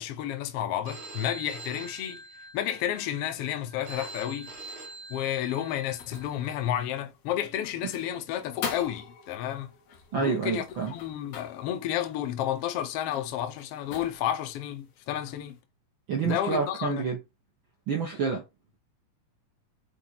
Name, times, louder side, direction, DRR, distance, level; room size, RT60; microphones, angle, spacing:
voice 1, 0.0-2.2 2.5-4.5 5.1-9.7 10.1-10.6 10.9-15.6 16.2-17.1, left 11 dB, 75° left, 1.4 m, -31 dB
Telephone, 0.9-6.8, right 3 dB, 50° right, 2.0 m, -45 dB
sound 1, 4.4-15.6, left 7 dB, 60° left, 2.2 m, -45 dB
voice 2, 10.1-10.9 16.1-17.2 17.9-18.4, right 5 dB, 75° right, 1.1 m, -28 dB
6.1 x 4.1 x 4.0 m
omnidirectional pair, 3.9 m